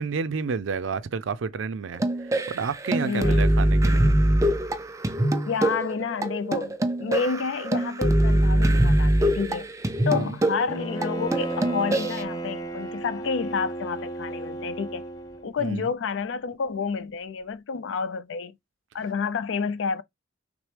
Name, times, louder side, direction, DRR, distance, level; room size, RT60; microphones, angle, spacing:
voice 1, 0.0-4.0 10.1-10.4 15.6-15.9, right 5 dB, 85° right, 0.5 m, -30 dB
sound 1, 1.9-12.2, right 1 dB, 15° right, 0.4 m, -23 dB
voice 2, 3.0-3.5 5.5-9.7 10.1-15.1 15.4-18.6 18.9-20.0, left 5 dB, 75° left, 0.4 m, -29 dB
Bowed string instrument, 10.7-15.5, right 2 dB, 20° left, 0.7 m, -33 dB
6.0 x 2.1 x 3.2 m
head